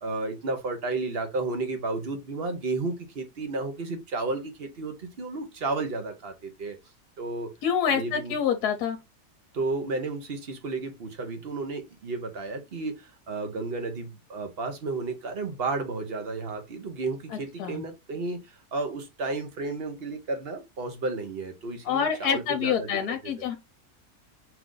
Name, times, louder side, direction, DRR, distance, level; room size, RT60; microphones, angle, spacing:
voice 1, 0.0-6.8 7.2-7.5 7.8-8.4 9.5-23.5, right 3 dB, 45° right, 1.0 m, -32 dB
voice 2, 7.6-9.0 17.3-17.8 21.8-23.6, left 8 dB, 75° left, 1.2 m, -27 dB
4.8 x 2.6 x 3.7 m
omnidirectional pair, 1.7 m